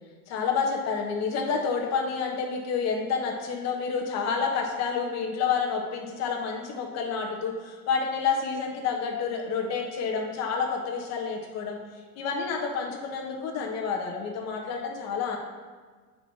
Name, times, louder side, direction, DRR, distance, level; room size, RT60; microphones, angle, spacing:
voice 1, 0.3-11.8 12.1-15.4, left 5 dB, 35° left, 0 dB, 1.3 m, -29 dB
7.7 x 4.8 x 4.1 m, 1.5 s
supercardioid pair, 145°, 47 cm